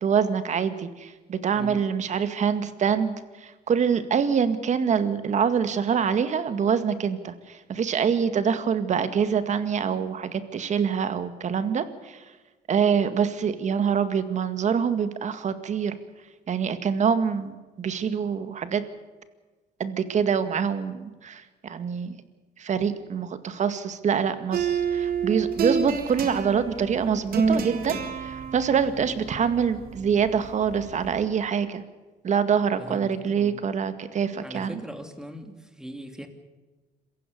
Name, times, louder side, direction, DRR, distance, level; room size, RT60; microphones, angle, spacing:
voice 1, 0.0-12.2 12.7-15.9 16.5-18.8 19.8-22.1 22.6-31.8 32.2-34.8, right 7 dB, 45° right, 11 dB, 2.1 m, -25 dB
sound 1, 24.5-31.2, right 5 dB, 60° right, 3.6 m, -29 dB
voice 2, 32.8-33.6 34.3-36.3, equal, 5° right, 6 dB, 3.0 m, -40 dB
27.0 x 16.0 x 6.9 m, 1.3 s
cardioid pair, 110°, 17 cm